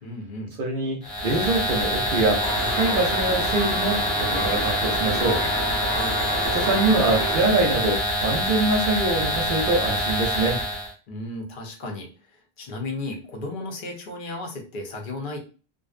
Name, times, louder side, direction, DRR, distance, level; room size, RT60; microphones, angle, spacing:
voice 1, 0.0-0.6 5.8-6.2 11.1-12.3 12.6-15.4, left 2 dB, 55° left, 2 dB, 0.8 m, -34 dB
voice 2, 0.6-5.4 6.5-10.6, right 2 dB, 60° right, 1 dB, 0.7 m, -24 dB
sound 1, 1.0-10.9, equal, 85° left, 1.2 m, -25 dB
sound 2, 2.4-7.4, right 1 dB, 10° right, 0.9 m, -30 dB
2.5 x 2.0 x 2.4 m, 0.35 s
omnidirectional pair, 1.1 m